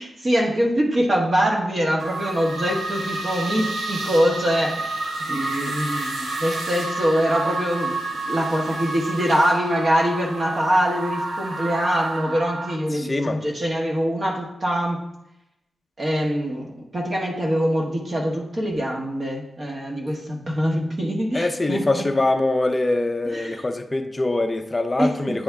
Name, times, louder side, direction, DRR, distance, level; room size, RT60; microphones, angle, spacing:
voice 1, 0.0-8.0 8.3-15.1 16.0-22.1 23.2-23.7 25.0-25.4, equal, 40° right, 0 dB, 1.1 m, -24 dB
sound 1, 2.0-12.8, right 2 dB, 85° right, 0.9 m, -30 dB
voice 2, 12.9-13.4 21.3-25.4, left 2 dB, 20° left, 6 dB, 0.5 m, -23 dB
8.6 x 3.4 x 3.5 m, 0.86 s
wide cardioid pair, 135°, 0 cm